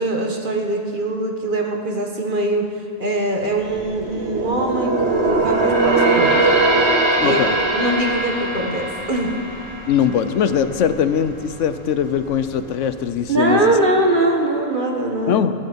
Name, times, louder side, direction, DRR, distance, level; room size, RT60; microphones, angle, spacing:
voice 1, 0.0-2.7 3.0-6.5 7.2-7.4 7.7-9.3 13.3-15.5, right 1 dB, 40° right, 1 dB, 1.7 m, -22 dB
sound 1, 3.4-10.9 11.3-11.5 12.1-12.8 13.1-13.2, right 2 dB, 60° right, 2.1 m, -21 dB
voice 2, 7.2-7.6 9.9-13.7 15.3-15.5, left 8 dB, 75° left, 11 dB, 1.0 m, -21 dB
16.0 x 7.7 x 8.4 m, 2.8 s
omnidirectional pair, 1.3 m